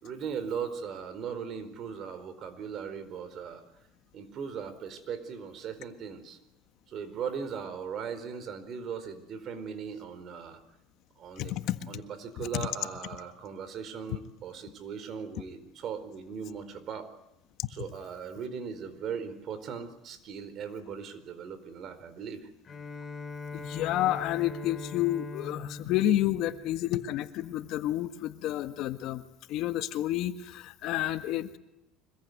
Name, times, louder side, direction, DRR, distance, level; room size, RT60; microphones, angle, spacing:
voice 1, 0.0-3.6 4.1-6.4 6.9-10.6 11.2-11.5 11.9-17.1 17.7-22.5, right 6 dB, 45° right, 12 dB, 4.5 m, -38 dB
voice 2, 11.4-11.9 12.4-12.7 23.5-29.2 29.5-31.6, left 13 dB, 60° left, 9 dB, 1.6 m, -30 dB
Bowed string instrument, 22.7-27.4, left 4 dB, 25° left, 2.7 m, -42 dB
25.5 x 22.0 x 9.5 m, 0.85 s
cardioid pair, 130°, 0 cm